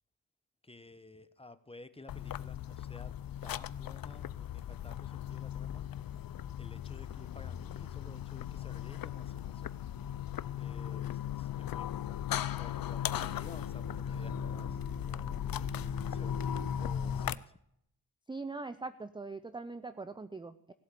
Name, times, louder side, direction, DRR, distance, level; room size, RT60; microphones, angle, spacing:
voice 1, 0.6-3.1 3.4-5.8 6.2-9.7 10.5-12.3 12.6-17.5, left 2 dB, 15° left, 13 dB, 0.9 m, -54 dB
sound 1, 2.1-17.4, left 9 dB, 55° left, 0.6 m, -37 dB
voice 2, 18.3-20.7, right 3 dB, 10° right, 12 dB, 0.5 m, -42 dB
17.0 x 8.0 x 6.9 m, 0.74 s
wide cardioid pair, 100°, 42 cm